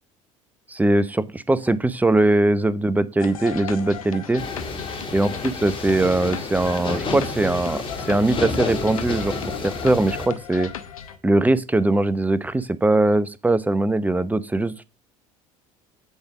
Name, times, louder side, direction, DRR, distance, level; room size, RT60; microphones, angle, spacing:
voice 1, 0.7-4.4 5.1-10.7 11.2-14.8, right 2 dB, 10° right, 15 dB, 0.7 m, -21 dB
sound 1, 3.2-11.2, left 9 dB, 85° left, 0.9 m, -36 dB
sound 2, 4.4-10.3, left 3 dB, 30° left, 3.6 m, -30 dB
8.2 x 5.2 x 6.0 m, 0.32 s
hypercardioid pair, 70°, 18 cm